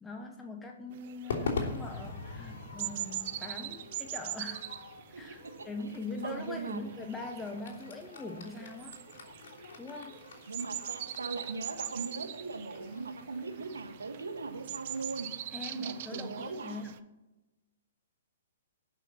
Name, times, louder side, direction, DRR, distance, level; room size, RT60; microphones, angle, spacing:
voice 1, 0.0-4.7 5.1-9.0 9.8-10.2 15.5-17.0, left 3 dB, 10° left, 3 dB, 1.1 m, -42 dB
sound 1, 0.9-17.0, right 13 dB, 50° right, 0.7 m, -43 dB
Crowd / Fireworks, 1.3-15.7, left 4 dB, 65° left, 3.3 m, -43 dB
voice 2, 5.1-5.5 6.2-6.8 10.5-15.3 15.7-16.8, right 3 dB, 80° right, 6 dB, 1.6 m, -39 dB
19.0 x 6.4 x 4.4 m, 1.0 s
figure-of-eight pair, 120°, 0 cm